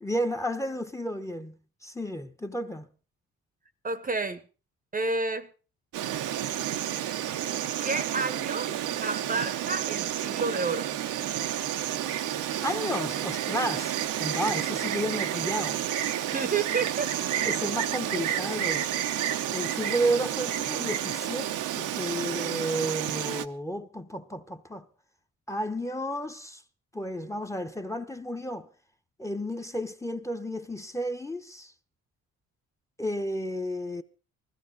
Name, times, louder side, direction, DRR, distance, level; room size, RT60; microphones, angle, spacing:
voice 1, 0.0-2.9 12.6-15.8 17.4-18.9 19.5-24.9 25.5-26.6 26.9-28.7 29.2-31.7 33.0-34.0, equal, 10° left, 0.9 m, -32 dB
voice 2, 3.8-4.4 4.9-5.5 7.8-8.7 9.0-10.9 16.3-17.1, right 4 dB, 30° right, 0.9 m, -30 dB
Insect, 5.9-23.5, right 11 dB, 85° right, 0.9 m, -30 dB
20.0 x 14.5 x 3.9 m
cardioid pair, 90°, 30 cm